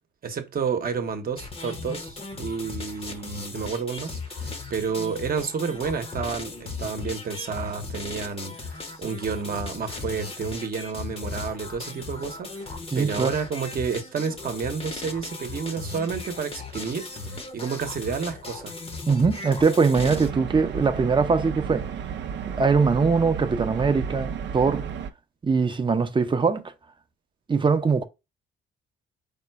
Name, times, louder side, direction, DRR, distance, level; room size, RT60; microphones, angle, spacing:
voice 1, 0.2-18.8, right 6 dB, 50° right, 1.0 m, -30 dB
sound 1, 1.4-20.3, left 3 dB, 30° left, 0.9 m, -37 dB
voice 2, 12.9-13.3 19.1-21.9 22.6-24.8 25.4-26.6 27.5-28.0, right 5 dB, 25° right, 0.7 m, -22 dB
sound 2, 20.0-25.1, right 7 dB, 65° right, 0.6 m, -33 dB
5.2 x 2.1 x 4.6 m
cardioid pair, 90°, 20 cm